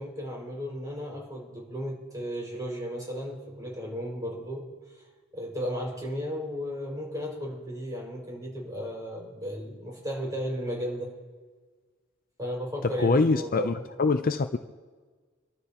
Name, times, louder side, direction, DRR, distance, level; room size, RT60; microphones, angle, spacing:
voice 1, 0.0-4.6 5.3-11.1 12.4-13.8, equal, 20° right, 5.6 m, -34 dB
voice 2, 13.0-14.6, left 3 dB, 45° left, 0.5 m, -24 dB
27.5 x 13.0 x 3.0 m
head